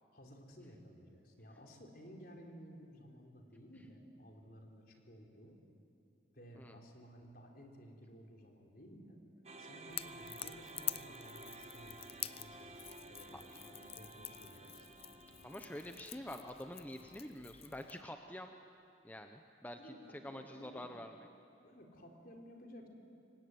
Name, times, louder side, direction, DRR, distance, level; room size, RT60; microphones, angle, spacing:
voice 1, 0.1-5.6 6.3-9.2 9.6-15.0 19.7-20.9 21.6-22.9, equal, 50° left, 2 dB, 3.8 m, -56 dB
sound 1, 9.4-17.7, right 2 dB, 35° right, 1.5 m, -54 dB
Crackle / Crack, 9.9-18.0, left 12 dB, 30° left, 0.6 m, -47 dB
voice 2, 15.4-18.5 19.0-19.9 20.2-21.1, left 1 dB, 10° left, 5 dB, 0.9 m, -47 dB
26.5 x 23.0 x 9.5 m, 2.6 s
head